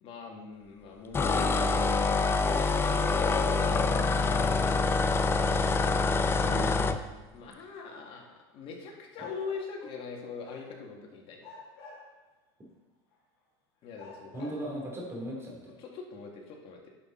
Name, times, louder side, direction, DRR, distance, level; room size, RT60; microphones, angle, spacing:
voice 1, 0.0-4.1 4.4-4.8 6.2-6.6 7.3-11.4 13.8-14.6 15.8-16.9, left 5 dB, 45° left, 1 dB, 1.9 m, -43 dB
sound 1, 1.1-7.0, left 3 dB, 20° left, 0.5 m, -26 dB
voice 2, 6.3-7.0 14.3-15.8, right 1 dB, 20° right, -1 dB, 2.8 m, -38 dB
sound 2, 7.6-7.7 9.1-10.1 10.4-11.0 11.4-12.4 13.1-13.2 13.9-14.8, left 3 dB, 75° left, 3.1 m, -49 dB
10.5 x 5.9 x 3.8 m, 1.1 s
supercardioid pair, 120°, 13 cm